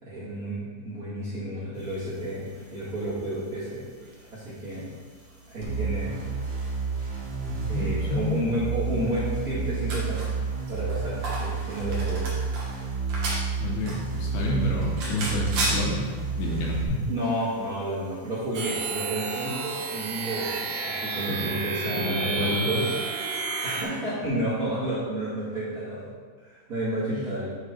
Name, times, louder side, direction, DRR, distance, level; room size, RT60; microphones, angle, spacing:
voice 1, 0.0-3.8 4.3-4.8 5.5-6.2 7.7-10.3 10.7-12.2 17.0-22.9 23.6-26.1 26.4-27.5, right 1 dB, 35° right, -11 dB, 1.3 m, -31 dB
sound 1, 1.7-18.5, right 1 dB, 70° right, 1.6 m, -39 dB
sound 2, 5.6-16.9, right 5 dB, 50° right, 2.6 m, -30 dB
voice 2, 7.5-8.4 13.6-17.1 21.3-21.6 21.9-22.7 24.2-24.3 27.2-27.3, left 2 dB, 70° left, -2 dB, 2.7 m, -29 dB
sound 3, 18.5-23.8, right 4 dB, 90° right, 3.3 m, -31 dB
7.6 x 4.0 x 5.2 m, 1.5 s
omnidirectional pair, 5.4 m